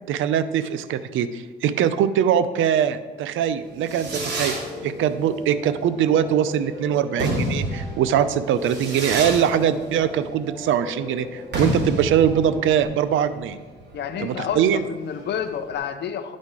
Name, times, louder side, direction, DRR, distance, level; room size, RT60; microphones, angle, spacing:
voice 1, 0.1-4.5 4.8-13.6 14.2-14.8, right 9 dB, 80° right, 12 dB, 0.5 m, -22 dB
Fireworks, 3.5-15.7, right 1 dB, 60° right, 2.3 m, -31 dB
Piano, 4.1-12.8, left 2 dB, 35° left, 1.8 m, -39 dB
voice 2, 13.9-16.4, left 8 dB, 60° left, 8 dB, 0.6 m, -29 dB
11.5 x 4.3 x 4.7 m, 1.3 s
cardioid pair, 90°, 20 cm